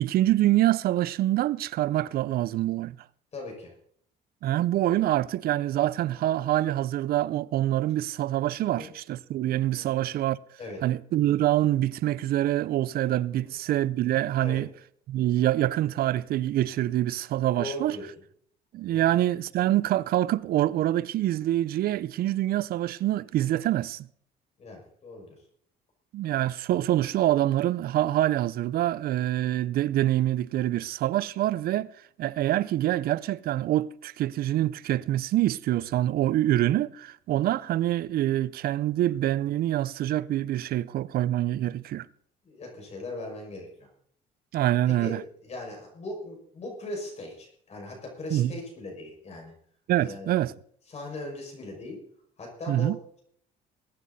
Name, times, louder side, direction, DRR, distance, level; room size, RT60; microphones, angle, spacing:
voice 1, 0.0-3.0 4.4-10.4 10.8-14.7 15.1-18.0 18.7-24.1 26.1-31.9 32.2-42.1 44.5-45.2 48.3-48.5 49.9-50.5 52.7-53.0, right 13 dB, 65° right, 0.5 m, -25 dB
voice 2, 3.3-3.7 8.6-8.9 9.8-10.1 10.6-10.8 13.3-13.5 14.4-14.6 17.6-18.1 18.9-19.1 24.6-25.4 42.4-43.9 44.9-49.5 50.0-50.3 50.9-52.0 52.4-53.2, left 2 dB, 40° left, 5.9 m, -39 dB
21.5 x 9.4 x 4.1 m
cardioid pair, 110°, 17 cm